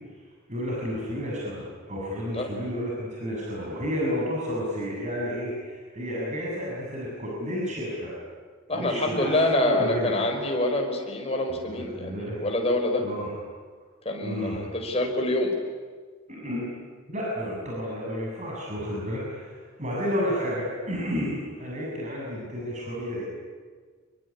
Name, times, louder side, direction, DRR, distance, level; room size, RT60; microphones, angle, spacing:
voice 1, 0.5-8.1 8.7-9.3 9.6-10.1 11.5-12.4 13.0-13.3 14.2-14.6 16.3-16.7 17.1-23.2, equal, 35° right, -3 dB, 7.3 m, -31 dB
voice 2, 8.7-13.0 14.0-15.5, left 1 dB, 30° left, 2 dB, 5.2 m, -26 dB
26.5 x 23.0 x 9.9 m, 1.5 s
head